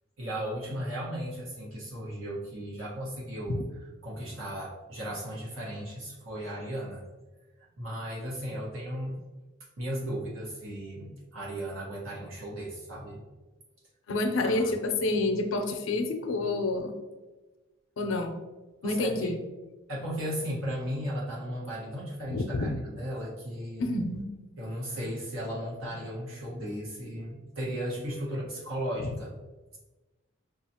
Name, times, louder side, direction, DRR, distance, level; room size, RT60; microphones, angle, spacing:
voice 1, 0.2-3.6 4.0-7.0 7.8-9.2 9.8-13.2 14.4-14.7 18.8-19.4 19.9-23.9 24.6-29.4, equal, 85° right, -5 dB, 1.3 m, -36 dB
voice 2, 14.1-16.9 18.0-18.4 18.8-19.4 22.3-22.8 23.8-24.3, left 2 dB, 75° left, 6 dB, 0.5 m, -28 dB
5.4 x 2.4 x 2.8 m, 1.2 s
head